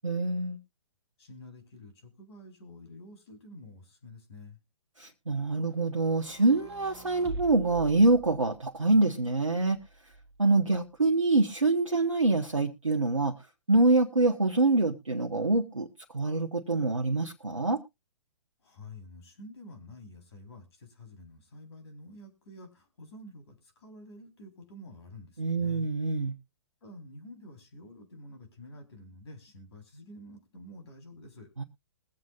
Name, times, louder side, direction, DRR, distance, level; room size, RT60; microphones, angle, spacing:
voice 1, 0.0-0.6 5.0-9.8 10.4-13.4 13.7-15.9 16.1-17.8 25.4-26.3 31.6-31.7, right 2 dB, 90° right, 3 dB, 1.0 m, -25 dB
voice 2, 1.2-4.6 18.6-25.9 26.8-31.5, left 1 dB, 60° left, 4 dB, 4.0 m, -49 dB
sound 1, 6.1-8.8 9.7-10.7, right 2 dB, 60° right, 1.5 m, -44 dB
21.5 x 7.7 x 2.4 m, 0.25 s
figure-of-eight pair, 120°, 16 cm